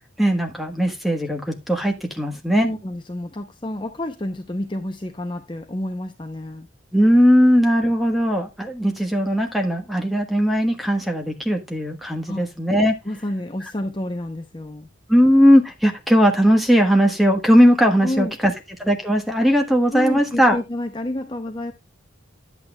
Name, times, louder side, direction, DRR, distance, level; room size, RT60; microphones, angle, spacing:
voice 1, 0.2-2.7 6.9-13.0 15.1-18.5 18.8-20.6, equal, ahead, 1.3 m, -18 dB
voice 2, 2.6-6.7 12.3-12.5 13.0-14.9 18.0-18.4 19.9-21.7, left 1 dB, 25° left, 0.7 m, -29 dB
11.0 x 8.5 x 2.3 m
head